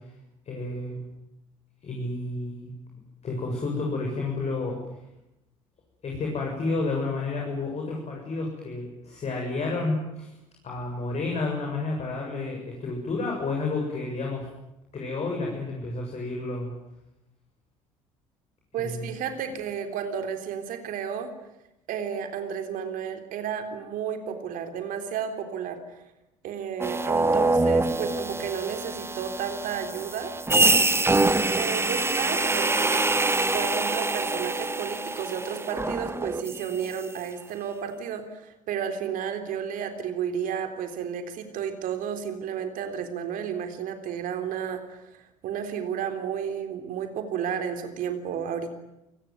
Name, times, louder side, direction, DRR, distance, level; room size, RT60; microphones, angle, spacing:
voice 1, 0.5-1.0 1.8-2.7 3.2-4.8 6.0-10.3 10.6-14.5 14.9-16.7 18.8-19.1, left 3 dB, 40° left, 0 dB, 7.4 m, -30 dB
voice 2, 18.7-21.3 21.9-26.1 26.4-30.3 31.5-33.0 33.5-45.2 45.4-48.7, right 8 dB, 55° right, 7 dB, 3.6 m, -32 dB
sound 1, 26.8-36.9, right 2 dB, 15° right, 1.7 m, -25 dB
28.0 x 19.0 x 9.5 m, 0.91 s
figure-of-eight pair, 60°, 17 cm